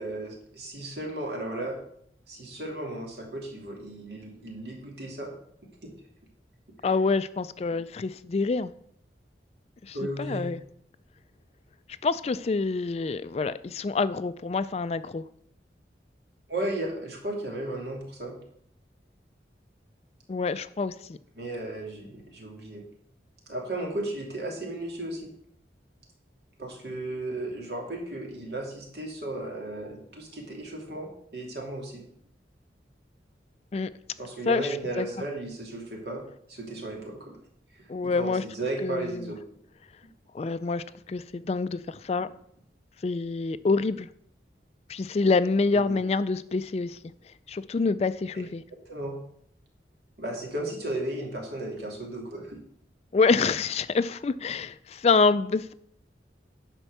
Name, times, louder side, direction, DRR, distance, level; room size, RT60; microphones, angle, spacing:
voice 1, 0.0-1.8 2.3-5.3 5.8-5.9 9.9-10.5 16.5-18.4 21.4-22.8 23.5-25.3 26.6-32.0 34.2-36.2 36.5-37.4 37.7-37.8 38.2-39.4 45.7-46.0 48.9-49.1 50.2-52.6, right 1 dB, 65° right, 2.7 m, -35 dB
voice 2, 6.8-8.7 9.8-10.6 12.0-15.2 20.3-21.2 33.7-33.9 34.5-35.1 37.9-38.4 38.8-39.3 40.3-42.3 43.0-44.1 44.9-47.0 47.5-48.6 53.1-55.7, left 4 dB, 35° left, 0.3 m, -26 dB
10.5 x 4.5 x 6.6 m
head